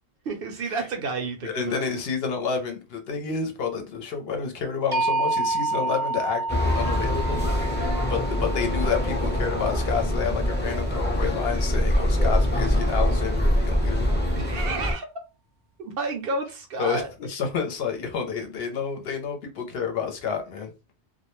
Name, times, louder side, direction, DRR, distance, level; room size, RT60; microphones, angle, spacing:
voice 1, 0.3-1.8 14.3-15.1 15.8-17.1, right 3 dB, 65° right, 0.7 m, -31 dB
voice 2, 1.4-7.5 8.1-14.1 16.8-20.7, left 6 dB, 65° left, 0.8 m, -29 dB
sound 1, 4.9-10.9, right 3 dB, 40° right, 0.3 m, -30 dB
sound 2, 6.5-14.9, left 1 dB, 10° left, 0.6 m, -24 dB
2.2 x 2.1 x 3.0 m
omnidirectional pair, 1.1 m